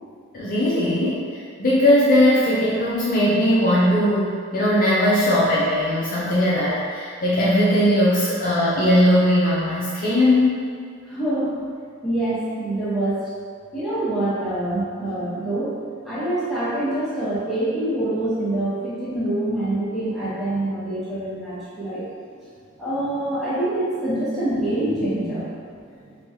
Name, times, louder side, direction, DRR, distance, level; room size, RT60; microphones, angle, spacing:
voice 1, 0.3-1.2 1.6-10.6, left 1 dB, 40° left, -7 dB, 0.4 m, -19 dB
voice 2, 11.1-11.6 12.0-13.2 13.7-15.7 16.0-22.1 22.8-25.9, right 1 dB, ahead, -12 dB, 0.8 m, -25 dB
2.9 x 2.3 x 2.7 m, 2.1 s
head